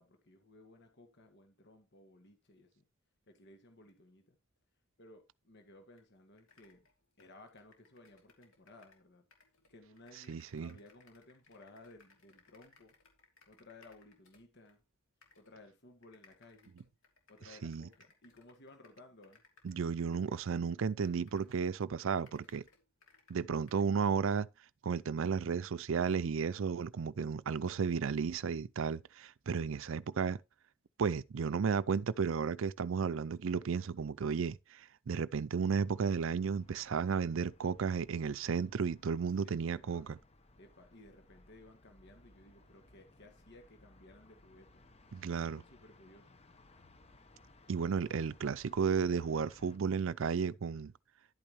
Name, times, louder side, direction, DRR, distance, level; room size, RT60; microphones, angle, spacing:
voice 1, 0.0-2.9 3.3-4.4 5.0-6.9 7.2-9.2 9.7-12.9 13.5-14.8 15.3-16.8 17.3-19.4 39.1-40.1 40.6-44.8 45.3-46.4, left 2 dB, 60° left, 1.7 m, -58 dB
sound 1, 6.0-6.1 6.4-9.0 9.3-14.8 15.2-15.5 16.0-21.7 22.0-24.2, left 4 dB, 80° left, 2.9 m, -66 dB
voice 2, 10.3-10.7 17.6-17.9 19.6-22.6 23.3-24.5 24.8-30.4 31.0-40.2 45.1-45.6 47.7-50.9, right 6 dB, 70° right, 0.5 m, -33 dB
sound 2, 35.8-49.8, left 2 dB, 30° left, 1.0 m, -62 dB
11.0 x 8.8 x 3.1 m
head